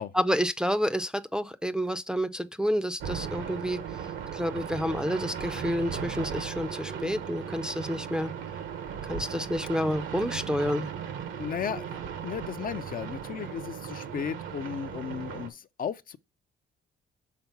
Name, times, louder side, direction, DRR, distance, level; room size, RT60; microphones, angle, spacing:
voice 1, 0.1-3.8 4.3-8.3 9.1-10.9, equal, 5° right, 0.5 m, -29 dB
sound 1, 3.0-15.5, right 7 dB, 80° right, 1.2 m, -37 dB
voice 2, 11.4-12.0 12.2-16.2, left 8 dB, 45° left, 0.5 m, -35 dB
5.8 x 3.8 x 5.7 m
cardioid pair, 90°, 20 cm